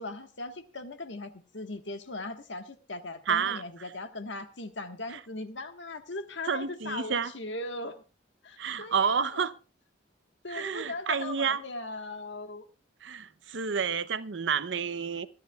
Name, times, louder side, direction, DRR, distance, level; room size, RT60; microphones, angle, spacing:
voice 1, 0.0-8.0 8.4-9.5 10.4-12.7, left 2 dB, 75° left, 1.4 m, -39 dB
voice 2, 3.3-3.6 5.1-5.2 6.5-7.3 8.6-9.5 10.5-11.6 13.0-15.3, right 6 dB, 80° right, 0.7 m, -30 dB
25.5 x 10.0 x 2.3 m
head